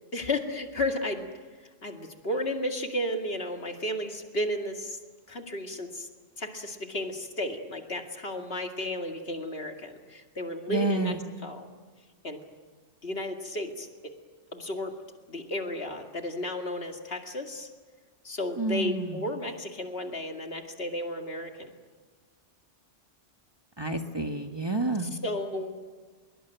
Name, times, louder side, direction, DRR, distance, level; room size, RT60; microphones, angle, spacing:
voice 1, 0.1-1.3 1.8-5.0 5.3-6.1 6.4-11.2 11.4-11.7 12.2-12.4 13.0-14.1 14.5-14.9 15.3-17.7 18.2-21.7 25.0-25.8, left 1 dB, 60° left, 4 dB, 2.5 m, -33 dB
voice 2, 10.7-11.2 18.6-19.2 23.8-25.1, right 2 dB, 20° right, 4 dB, 1.4 m, -29 dB
24.0 x 22.5 x 9.1 m, 1.5 s
omnidirectional pair, 1.2 m